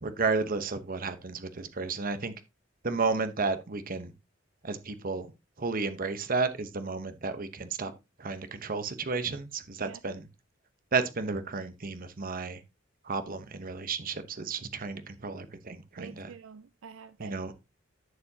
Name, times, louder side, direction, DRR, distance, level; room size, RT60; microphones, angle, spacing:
voice 1, 0.0-2.3 2.8-4.1 4.6-5.3 5.6-7.9 8.2-10.3 10.9-12.6 13.0-16.3 17.2-17.5, right 4 dB, 45° right, 1.0 m, -32 dB
voice 2, 16.0-17.5, right 6 dB, 75° right, 0.4 m, -47 dB
11.0 x 6.9 x 2.8 m
head